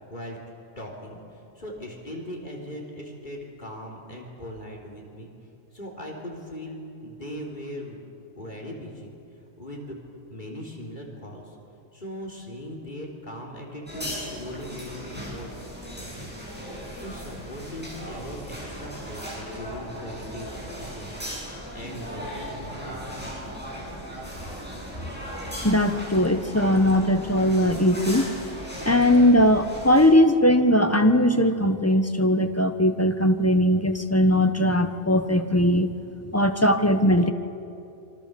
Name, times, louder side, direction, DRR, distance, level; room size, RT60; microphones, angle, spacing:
voice 1, 0.8-5.3 5.7-8.0 8.4-9.1 9.6-10.0 10.3-11.6 11.9-15.5 15.9-16.4 16.7-21.1 21.5-23.6 24.9-25.0, equal, 40° left, 0 dB, 4.0 m, -39 dB
sound 1, 13.9-30.1, equal, 10° right, 7.6 m, -37 dB
voice 2, 25.6-28.3 28.8-35.9 36.3-37.3, left 1 dB, 15° left, 7 dB, 1.1 m, -20 dB
26.5 x 24.5 x 7.0 m, 2.7 s
omnidirectional pair, 1.2 m